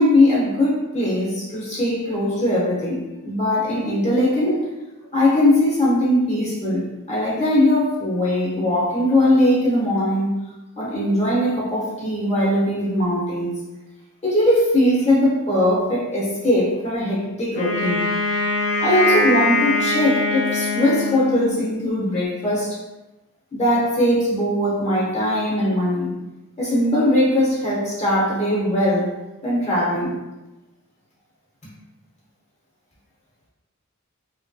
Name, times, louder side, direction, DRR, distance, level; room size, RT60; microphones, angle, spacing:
voice 1, 0.0-4.6 5.1-10.4 10.8-13.5 14.2-18.1 18.8-22.8 23.5-26.2 26.6-29.1 29.4-30.2, left 1 dB, 30° left, -6 dB, 0.8 m, -20 dB
Wind instrument woodwind instrument, 17.5-21.8, left 2 dB, 80° left, 0.5 m, -22 dB
3.3 x 2.6 x 2.2 m, 1.0 s
head